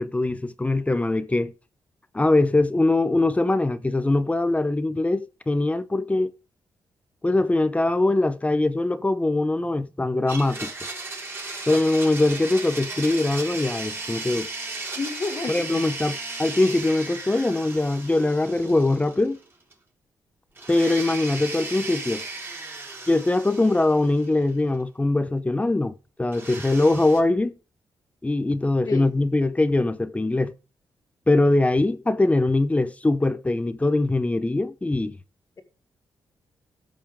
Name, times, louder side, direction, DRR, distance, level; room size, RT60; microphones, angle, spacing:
voice 1, 0.0-1.5 2.1-6.3 7.2-10.7 11.7-14.5 15.5-19.4 20.7-22.3 23.1-27.5 28.2-30.5 31.3-35.2, left 2 dB, 15° left, 0.8 m, -22 dB
Domestic sounds home sounds, 10.3-19.4 19.7-19.8 20.6-24.5 26.3-27.2, right 3 dB, 30° right, 3.8 m, -36 dB
voice 2, 15.0-15.8 28.8-29.1, left 4 dB, 45° left, 1.9 m, -30 dB
14.0 x 5.6 x 3.7 m
cardioid pair, 90°, 8 cm